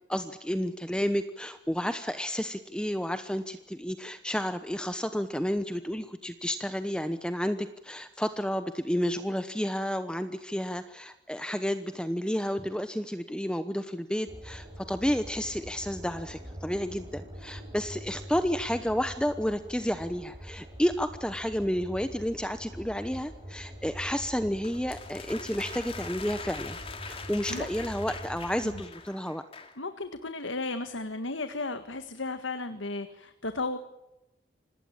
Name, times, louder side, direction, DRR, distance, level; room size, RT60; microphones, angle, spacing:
voice 1, 0.1-26.8 27.1-29.4, equal, 5° left, 10 dB, 0.9 m, -31 dB
sound 1, 14.3-28.9, equal, 25° right, 5.7 m, -44 dB
sound 2, 24.6-29.8, left 5 dB, 30° left, 2.6 m, -43 dB
voice 2, 29.8-33.8, left 3 dB, 85° left, 9 dB, 1.7 m, -34 dB
26.5 x 19.5 x 8.9 m, 0.94 s
head